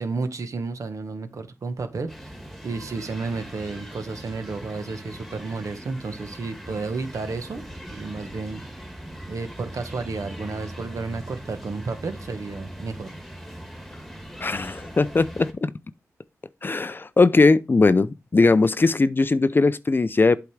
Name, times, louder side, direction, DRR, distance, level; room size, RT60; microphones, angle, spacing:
voice 1, 0.0-2.1 2.6-7.6 7.9-8.6 9.3-13.1, right 4 dB, 65° right, 1.0 m, -32 dB
sound 1, 2.1-15.5, equal, ahead, 1.5 m, -40 dB
voice 2, 14.4-15.7 16.6-20.4, left 3 dB, 35° left, 0.4 m, -19 dB
8.3 x 3.5 x 4.7 m
cardioid pair, 55°, 6 cm